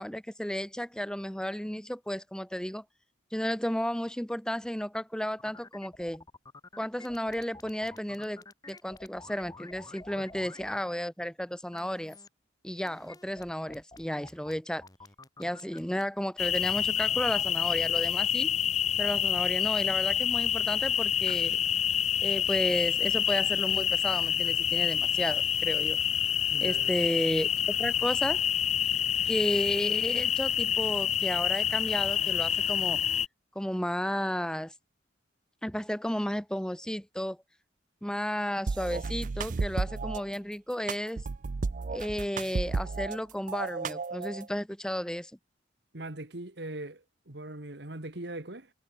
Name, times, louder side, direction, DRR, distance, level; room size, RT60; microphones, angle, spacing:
voice 1, 0.0-2.8 3.3-6.2 6.8-12.2 12.6-14.8 15.4-18.6 19.0-21.6 22.2-26.0 26.6-28.4 29.2-33.0 33.5-34.7 35.6-37.4 38.0-41.2 41.9-45.3, equal, 5° left, 0.9 m, -33 dB
sound 1, 5.4-10.8 11.7-12.3 12.8-16.0, left 3 dB, 20° left, 6.9 m, -50 dB
sound 2, 16.4-33.3, left 9 dB, 35° left, 0.3 m, -27 dB
voice 2, 26.5-26.9 45.9-48.7, right 2 dB, 65° right, 2.0 m, -40 dB
sound 3, 38.7-40.2 40.9-43.2 43.5-44.5, right 4 dB, 45° right, 0.4 m, -33 dB
head